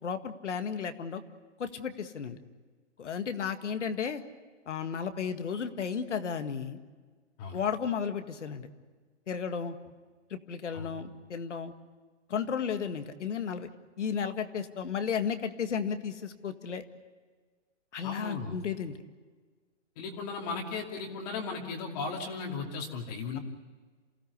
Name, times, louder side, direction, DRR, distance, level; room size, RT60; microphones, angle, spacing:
voice 1, 0.0-1.2 1.6-2.4 3.0-4.2 4.7-6.8 7.5-8.7 9.3-9.8 10.3-11.7 12.3-13.7 14.0-16.8 17.9-19.0, left 7 dB, 70° left, 8 dB, 1.9 m, -33 dB
voice 2, 18.0-18.6 20.0-23.4, left 4 dB, 35° left, 0 dB, 2.7 m, -36 dB
28.0 x 16.5 x 8.3 m, 1.4 s
hypercardioid pair, 150°, 37 cm